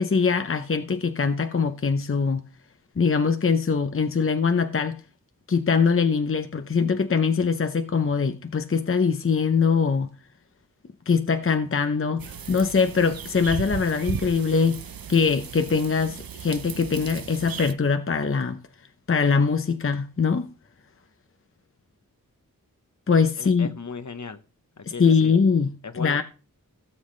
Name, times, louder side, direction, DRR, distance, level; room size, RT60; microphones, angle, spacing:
voice 1, 0.0-2.5 3.0-5.0 5.5-10.1 11.1-14.8 15.1-18.6 19.1-20.5 23.1-23.7 24.8-26.2, left 5 dB, 40° left, 0.7 m, -22 dB
sound 1, 12.2-17.7, right 7 dB, 90° right, 0.7 m, -36 dB
voice 2, 23.4-24.4 24.8-25.3 25.8-26.2, left 4 dB, 55° left, 1.0 m, -36 dB
17.0 x 7.2 x 3.2 m
wide cardioid pair, 75°, 34 cm